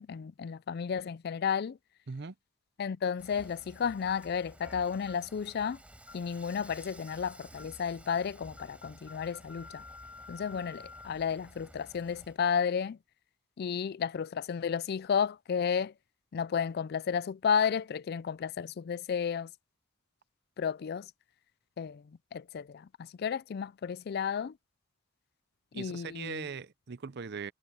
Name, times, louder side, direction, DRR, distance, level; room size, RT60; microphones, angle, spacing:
voice 1, 0.0-1.8 2.8-5.8 6.1-9.8 10.3-13.0 13.6-15.9 16.3-19.5 20.6-21.1 21.8-22.0 22.3-24.5 25.7-26.5, left 7 dB, 50° left, 0.3 m, -32 dB
Dishes pots and pans / Frying (food), 3.2-12.4, right 1 dB, 5° right, 5.1 m, -54 dB
sound 1, 4.2-4.3 5.1-5.3 6.1-6.3 7.1-7.3 7.6-7.8 8.1-8.3 8.6-11.1, left 4 dB, 90° left, 2.9 m, -51 dB
voice 2, 25.7-27.5, right 5 dB, 55° right, 0.6 m, -40 dB
head